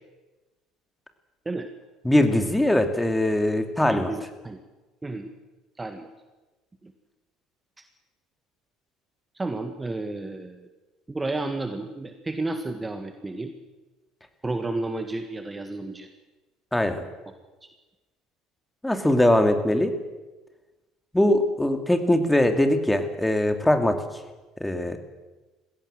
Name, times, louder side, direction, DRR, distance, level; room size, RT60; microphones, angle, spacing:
voice 1, 2.0-4.1 16.7-17.1 18.8-19.9 21.1-24.0 24.6-25.0, left 1 dB, 5° left, 6 dB, 2.6 m, -21 dB
voice 2, 3.9-4.6 5.0-5.3 5.8-6.1 6.8-6.9 9.4-10.6 11.1-13.5 14.4-16.1 17.6-17.7, right 2 dB, 15° right, 7 dB, 1.7 m, -32 dB
21.0 x 16.5 x 7.7 m, 1.2 s
figure-of-eight pair, 60°, 0 cm